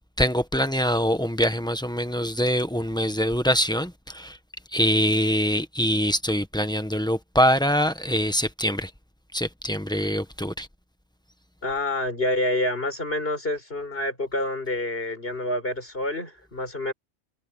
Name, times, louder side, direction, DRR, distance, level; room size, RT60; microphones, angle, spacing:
voice 1, 0.2-4.4 4.7-8.9 9.3-10.7, equal, 5° left, 1.1 m, -24 dB
voice 2, 11.6-16.9, left 1 dB, 55° left, 5.4 m, -27 dB
omnidirectional pair, 1.2 m